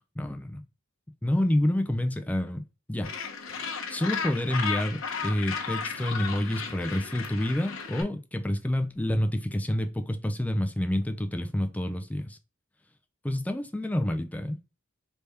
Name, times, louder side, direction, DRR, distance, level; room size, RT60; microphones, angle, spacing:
voice 1, 0.2-0.6 1.2-2.6 2.9-3.1 3.5-12.4 13.2-14.6, left 1 dB, 10° left, 0.4 m, -28 dB
Gull seagull, 3.0-8.0, left 5 dB, 75° left, 0.7 m, -34 dB
3.3 x 2.8 x 3.3 m
head